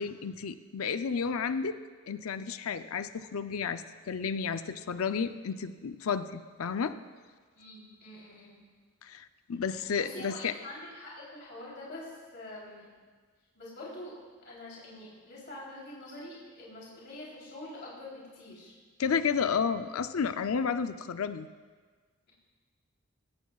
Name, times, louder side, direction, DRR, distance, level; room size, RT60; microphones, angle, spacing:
voice 1, 0.0-1.8 2.1-6.9 9.0-10.5 19.0-21.5, left 6 dB, 75° left, 10 dB, 0.5 m, -32 dB
voice 2, 7.6-8.5 10.0-12.9 13.5-14.1 14.4-18.7, left 1 dB, 50° left, -5 dB, 3.4 m, -45 dB
18.0 x 16.5 x 2.4 m, 1.5 s
head